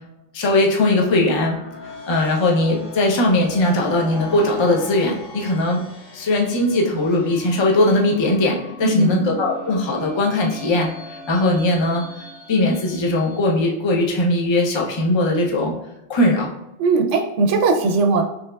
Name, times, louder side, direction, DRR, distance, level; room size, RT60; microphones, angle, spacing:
voice 1, 0.3-1.6 2.1-5.8 6.1-12.0 12.5-15.7 16.1-16.5, left 2 dB, 35° left, -1 dB, 0.5 m, -19 dB
sound 1, 1.2-13.7, left 2 dB, 80° left, 1.2 m, -38 dB
voice 2, 8.8-9.2 16.8-18.2, right 3 dB, 80° right, 5 dB, 0.9 m, -18 dB
3.3 x 2.9 x 2.2 m, 0.91 s
omnidirectional pair, 1.2 m